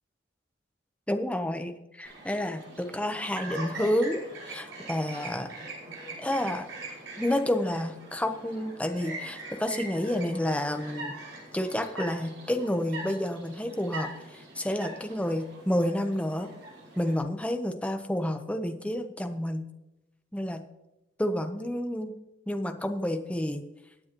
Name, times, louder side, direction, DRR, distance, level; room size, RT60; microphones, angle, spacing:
voice 1, 1.1-5.5 6.2-6.7 7.2-11.2 11.5-16.5 17.0-19.6 20.3-20.6 21.2-22.2 22.5-23.7, left 1 dB, 5° left, 6 dB, 0.9 m, -30 dB
Chirp tweet, 2.0-17.2, right 2 dB, 70° right, 5.6 m, -42 dB
21.5 x 9.3 x 3.0 m, 0.94 s
head